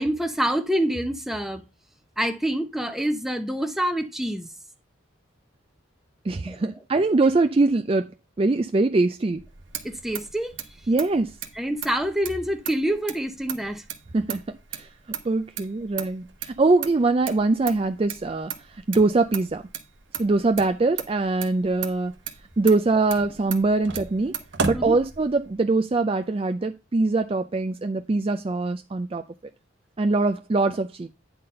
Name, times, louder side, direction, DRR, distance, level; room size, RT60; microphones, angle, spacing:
voice 1, 0.0-1.6 2.2-4.5 6.5-6.6 9.8-10.5 11.5-13.8 24.7-25.0, right 1 dB, ahead, 0.7 m, -26 dB
voice 2, 6.2-8.1 8.4-9.4 10.9-11.3 14.1-14.9 15.2-19.6 20.2-22.1 22.6-24.4 24.6-29.2 30.0-31.1, right 3 dB, 25° right, 0.4 m, -23 dB
Motor vehicle (road), 9.3-25.6, right 6 dB, 65° right, 1.0 m, -37 dB
9.4 x 4.0 x 5.4 m
head